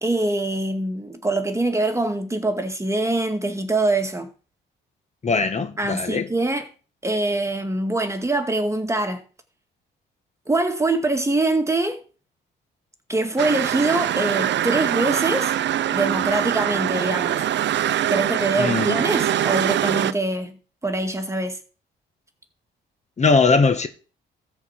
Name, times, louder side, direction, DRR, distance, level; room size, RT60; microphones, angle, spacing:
voice 1, 0.0-4.3 5.8-6.7 7.0-9.2 10.5-12.0 13.1-15.5 15.9-17.4 18.1-21.6, right 2 dB, 15° right, 2.1 m, -24 dB
voice 2, 5.2-6.3 18.6-19.0 23.2-23.9, left 4 dB, 35° left, 1.5 m, -20 dB
sound 1, 13.4-20.1, right 11 dB, 65° right, 0.7 m, -23 dB
13.5 x 4.7 x 8.2 m
cardioid pair, 90°, 20 cm